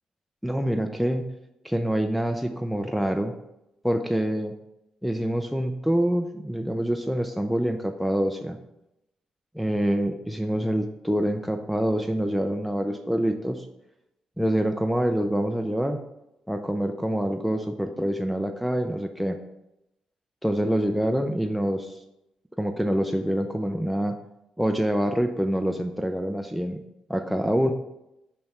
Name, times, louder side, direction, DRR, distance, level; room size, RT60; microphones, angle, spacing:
voice 1, 0.4-1.3 1.6-3.3 3.8-4.5 5.0-8.6 9.5-13.7 14.4-16.0 16.5-19.4 20.4-21.9 22.6-24.2 24.6-26.8 27.1-27.7, equal, ahead, 5 dB, 0.5 m, -26 dB
5.8 x 5.4 x 4.3 m, 0.88 s
cardioid pair, 95°, 2 cm